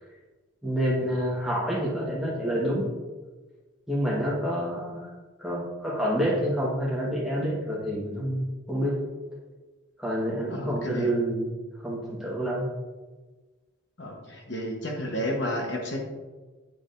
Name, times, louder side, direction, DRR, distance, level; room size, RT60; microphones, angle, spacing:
voice 1, 0.6-2.9 3.9-5.1 5.4-9.0 10.0-11.5 11.8-12.7, equal, ahead, -5 dB, 1.3 m, -28 dB
voice 2, 10.5-11.1 14.0-16.0, equal, 60° left, 0 dB, 1.0 m, -32 dB
9.4 x 4.9 x 2.5 m, 1.3 s
head